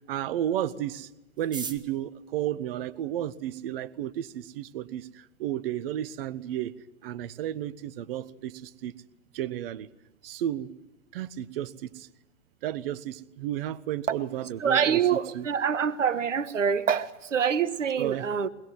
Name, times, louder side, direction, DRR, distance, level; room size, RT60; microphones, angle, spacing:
voice 1, 0.1-1.1 1.4-6.7 7.0-8.9 9.3-9.9 10.2-10.7 11.1-12.1 12.6-15.5 18.0-18.3, right 12 dB, 45° right, 1.3 m, -32 dB
sound 1, 1.3-3.6 4.4-4.5 4.7-4.8 5.1-5.6 5.9-6.0 6.2-6.6 6.9-7.1 7.4-7.7, right 5 dB, 10° right, 1.4 m, -42 dB
voice 2, 14.6-18.5, right 7 dB, 75° right, 1.4 m, -25 dB
23.5 x 21.0 x 9.3 m
figure-of-eight pair, 110°, 38 cm